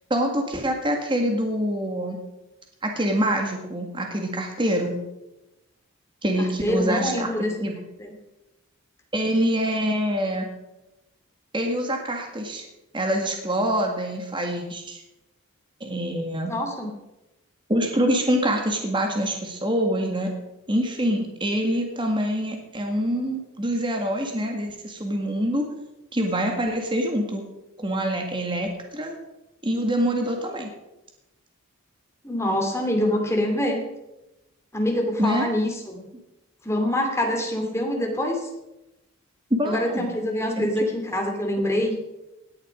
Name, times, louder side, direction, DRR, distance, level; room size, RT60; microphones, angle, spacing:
voice 1, 0.1-2.2 2.8-5.0 6.2-7.8 9.1-10.5 11.5-12.6 12.9-15.0 15.8-16.5 17.7-20.3 20.7-25.6 26.1-27.4 27.8-29.1 29.6-30.7 35.2-35.5 39.5-40.1 40.6-40.7, equal, 25° right, 3 dB, 1.8 m, -25 dB
voice 2, 6.4-7.5 8.0-8.1 16.5-16.9 32.2-33.8 34.7-36.0 36.6-38.5 39.6-42.0, left 1 dB, 15° left, 2 dB, 2.5 m, -25 dB
17.5 x 10.5 x 5.1 m, 0.95 s
head